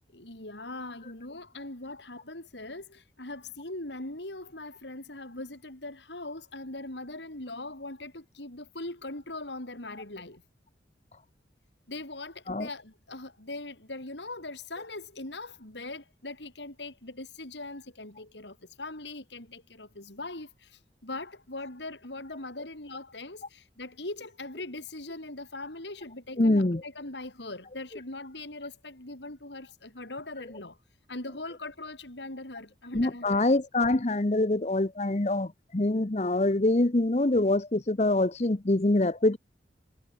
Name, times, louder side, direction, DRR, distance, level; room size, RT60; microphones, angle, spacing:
voice 1, 0.1-10.4 11.9-30.8 31.1-33.5, left 2 dB, 80° left, 5.3 m, -41 dB
voice 2, 26.4-26.8 32.9-39.4, left 2 dB, 40° left, 0.9 m, -25 dB
head